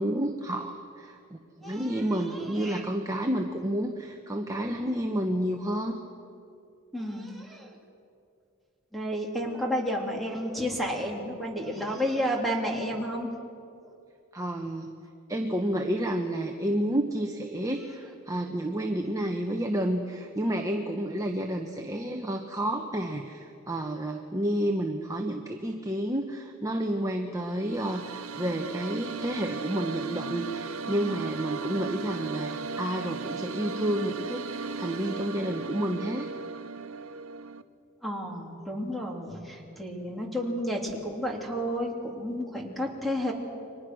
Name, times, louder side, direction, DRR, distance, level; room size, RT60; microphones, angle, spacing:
voice 1, 0.0-1.4 1.6-6.0 14.3-14.9 15.3-36.3, right 1 dB, 15° right, 2 dB, 1.2 m, -30 dB
voice 2, 1.6-2.8 6.9-7.8 8.9-13.3 13.8-13.9 17.6-17.8 22.0-22.1 38.0-43.3, equal, ahead, 0 dB, 3.4 m, -32 dB
sound 1, 27.4-37.6, right 4 dB, 80° right, 1.0 m, -37 dB
30.0 x 24.0 x 6.3 m, 2.4 s
head